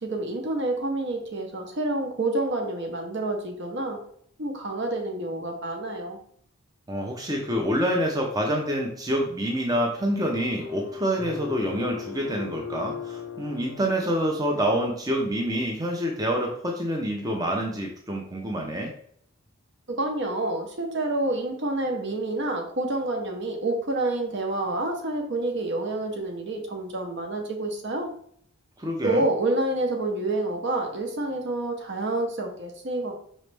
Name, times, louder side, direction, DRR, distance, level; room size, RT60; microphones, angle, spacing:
voice 1, 0.0-4.0 4.4-6.2 19.9-28.1 29.0-33.1, right 2 dB, 55° right, 3 dB, 0.8 m, -28 dB
voice 2, 6.9-18.9 28.8-29.2, equal, 15° right, 0 dB, 0.5 m, -27 dB
sound 1, 10.0-15.2, left 6 dB, 65° left, 0.6 m, -38 dB
5.1 x 3.1 x 3.3 m, 0.63 s
head